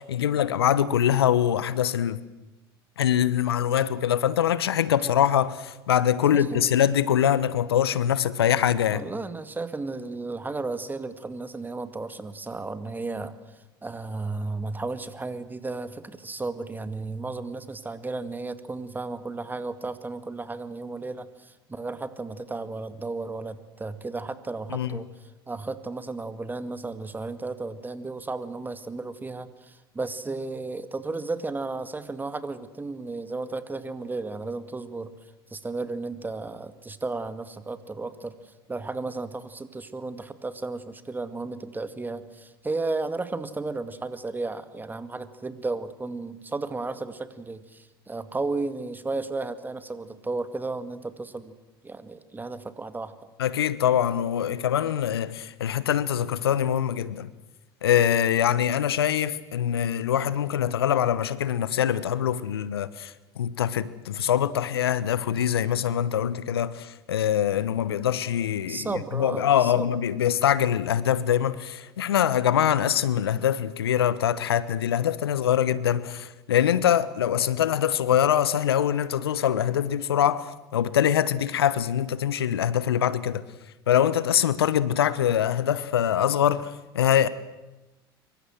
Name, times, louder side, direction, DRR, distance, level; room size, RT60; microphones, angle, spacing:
voice 1, 0.0-2.2 3.0-9.0 24.7-25.0 53.4-57.3 57.8-68.9 69.1-83.4 83.9-87.3, left 10 dB, 80° left, 1.1 m, -24 dB
voice 2, 6.2-6.7 8.9-35.1 35.5-51.5 51.8-53.2 68.7-70.0, right 3 dB, 15° right, 2.1 m, -34 dB
26.0 x 24.0 x 7.8 m
hypercardioid pair, 75°, 13 cm